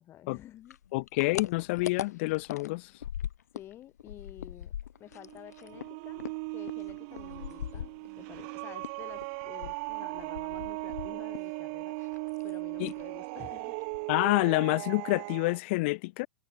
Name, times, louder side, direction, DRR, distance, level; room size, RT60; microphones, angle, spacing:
voice 1, 0.0-0.8 3.5-4.7 5.0-12.0 12.4-13.8, left 13 dB, 30° left, 3.1 m, -50 dB
sound 1, 0.7-3.7 4.0-8.5 8.8-11.6 11.8-12.5 12.8-13.1 13.4-13.5 13.8-14.3, left 10 dB, 80° left, 1.2 m, -41 dB
voice 2, 0.9-2.9 12.8-12.9 14.1-16.3, left 24 dB, 45° left, 0.6 m, -28 dB
sound 2, 5.1-15.6, right 33 dB, 45° right, 3.4 m, -38 dB
hypercardioid pair, 130°, 9 cm